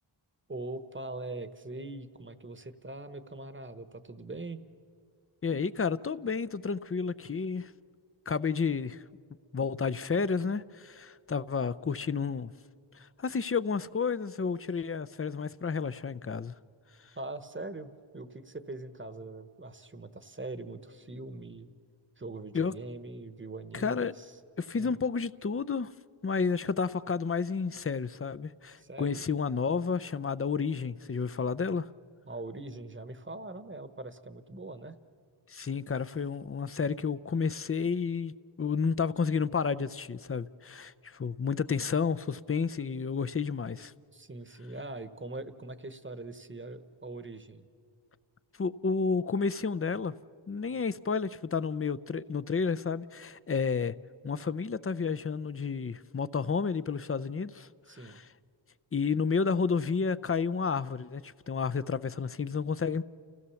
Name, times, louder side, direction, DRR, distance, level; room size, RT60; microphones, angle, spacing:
voice 1, 0.5-4.6 17.1-21.7 22.2-24.3 24.8-25.0 28.8-29.2 32.3-35.0 44.1-47.7 57.9-58.2, right 2 dB, 25° right, 1.1 m, -42 dB
voice 2, 5.4-7.7 8.3-9.0 9.5-12.5 12.9-16.5 22.5-22.7 23.7-24.1 24.6-25.9 26.2-31.9 35.5-43.9 48.6-50.1 50.5-54.0 54.2-57.7 58.0-58.3 58.9-63.0, left 5 dB, 30° left, 0.5 m, -31 dB
30.0 x 16.0 x 7.0 m
wide cardioid pair, 70°, 48 cm